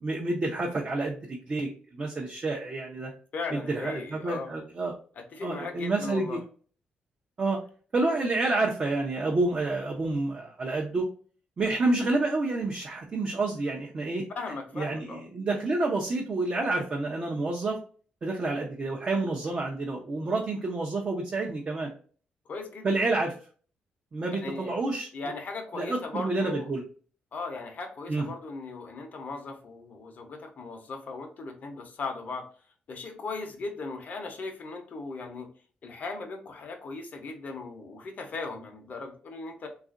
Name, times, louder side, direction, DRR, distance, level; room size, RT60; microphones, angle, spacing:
voice 1, 0.0-3.1 3.5-4.9 5.4-6.4 7.4-7.6 7.9-11.1 11.6-14.2 14.7-17.8 18.2-21.9 22.8-23.3 24.1-25.1 25.7-26.8 28.1-28.3, right 2 dB, 40° right, -1 dB, 0.6 m, -29 dB
voice 2, 3.3-4.5 5.2-6.4 14.4-15.2 22.5-23.0 24.4-24.7 25.1-26.7 27.3-32.4 32.9-35.5 35.8-39.7, left 3 dB, 60° left, 4 dB, 0.7 m, -38 dB
2.7 x 2.4 x 2.4 m, 0.42 s
cardioid pair, 70°, 3 cm